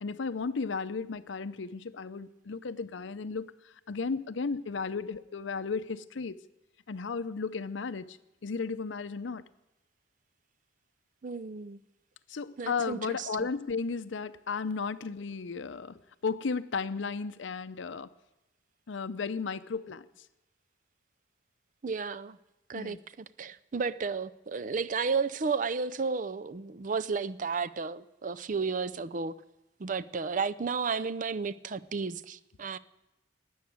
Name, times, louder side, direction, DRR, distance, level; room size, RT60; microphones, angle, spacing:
voice 1, 0.0-6.4 6.9-9.4 12.3-18.1 18.9-20.0 22.7-23.0, left 4 dB, 85° left, 0.6 m, -34 dB
voice 2, 11.2-11.8 12.6-13.5 21.8-22.4 22.7-29.4 29.8-32.8, right 5 dB, 45° right, 0.5 m, -33 dB
13.0 x 9.5 x 9.4 m
head